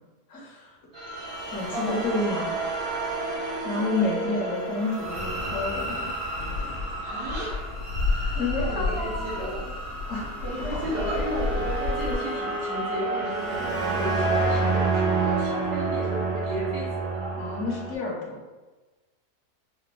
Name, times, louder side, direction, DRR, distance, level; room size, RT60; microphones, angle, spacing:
voice 1, 0.3-0.8 1.5-2.5 3.6-6.1 8.1-9.4 10.1-10.3 10.7-11.0 17.3-18.4, left 3 dB, 55° left, -4 dB, 0.9 m, -30 dB
sound 1, 0.9-17.9, right 3 dB, 50° right, 0.4 m, -30 dB
voice 2, 1.7-2.5 3.4-3.9 7.0-7.7 8.4-9.7 10.4-17.3, right 1 dB, 80° right, -7 dB, 1.6 m, -34 dB
sound 2, 6.3-12.2, left 3 dB, 80° left, 1.1 m, -31 dB
4.4 x 2.0 x 2.4 m, 1.2 s
omnidirectional pair, 1.7 m